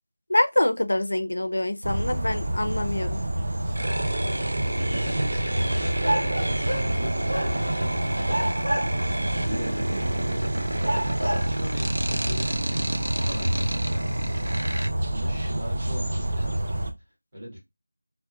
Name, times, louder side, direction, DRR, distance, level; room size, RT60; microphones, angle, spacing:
voice 1, 0.3-3.2, left 1 dB, 65° left, 0.5 m, -25 dB
sound 1, 1.8-16.9, right 1 dB, 35° right, 0.4 m, -28 dB
sound 2, 3.8-14.9, right 1 dB, 90° right, 0.5 m, -31 dB
sound 3, 4.5-4.6 6.0-7.0 7.3-7.9 8.3-9.2 10.0-10.1 10.8-11.6, right 1 dB, 65° right, 1.3 m, -29 dB
voice 2, 4.9-8.4 9.2-10.7 11.2-16.7 17.3-17.6, equal, 15° right, 1.2 m, -38 dB
2.9 x 2.1 x 2.2 m
figure-of-eight pair, 180°, 0 cm